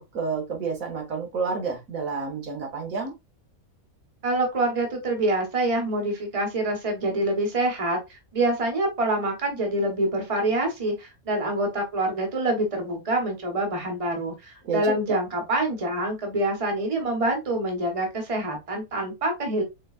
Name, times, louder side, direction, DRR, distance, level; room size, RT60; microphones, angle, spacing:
voice 1, 0.0-3.1 14.6-15.2, right 4 dB, 70° right, 1.5 m, -30 dB
voice 2, 4.2-19.6, right 1 dB, 25° right, 1.2 m, -26 dB
4.5 x 3.8 x 2.4 m
omnidirectional pair, 1.5 m